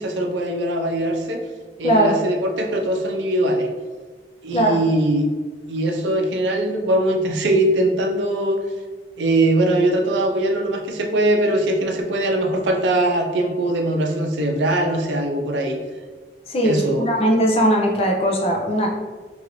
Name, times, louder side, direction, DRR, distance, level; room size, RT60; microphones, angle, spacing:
voice 1, 0.0-1.4 1.8-3.7 4.4-5.3 5.7-8.7 9.2-15.8 16.6-17.1, right 1 dB, 85° right, 3 dB, 0.5 m, -21 dB
voice 2, 16.5-18.9, equal, 35° left, 0 dB, 0.5 m, -19 dB
3.0 x 2.6 x 3.0 m, 1.4 s
head